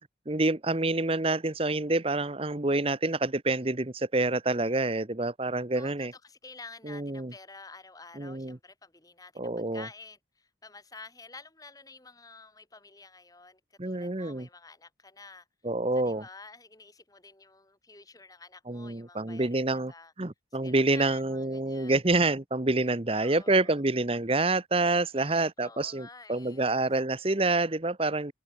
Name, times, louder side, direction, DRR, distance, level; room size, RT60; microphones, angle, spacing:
voice 1, 0.3-6.1 6.8-7.3 8.2-8.6 9.4-9.9 13.8-14.5 15.6-16.2 18.7-19.9 20.2-28.3, right 2 dB, 30° right, 1.1 m, -27 dB
voice 2, 5.7-15.5 15.9-20.1 20.6-22.0 23.1-23.8 25.1-26.7, left 3 dB, 20° left, 2.9 m, -50 dB
head